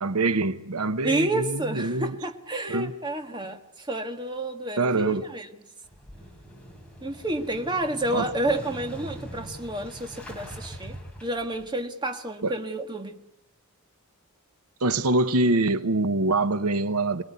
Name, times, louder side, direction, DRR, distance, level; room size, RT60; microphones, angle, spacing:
voice 1, 0.0-2.2 2.7-2.9 4.8-5.2 8.1-8.3 12.4-12.5 14.8-17.2, right 2 dB, 80° right, 0.9 m, -24 dB
voice 2, 1.0-5.5 7.0-11.0 11.2-13.2, right 1 dB, 20° right, 1.6 m, -30 dB
Motorcycle / Engine starting, 5.8-11.7, equal, 5° left, 4.0 m, -42 dB
26.0 x 20.5 x 9.5 m
head